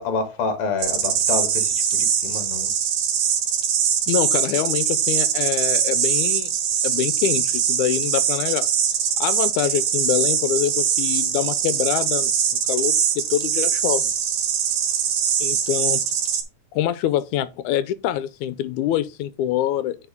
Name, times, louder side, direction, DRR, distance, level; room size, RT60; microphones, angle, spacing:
voice 1, 0.0-2.7, left 4 dB, 50° left, 2.5 m, -28 dB
sound 1, 0.8-16.4, right 8 dB, 65° right, 2.2 m, -22 dB
voice 2, 4.1-6.5 6.8-8.7 9.2-12.3 12.7-14.1 15.4-16.1 16.8-20.0, left 11 dB, 85° left, 2.1 m, -25 dB
10.0 x 5.0 x 3.5 m
omnidirectional pair, 3.5 m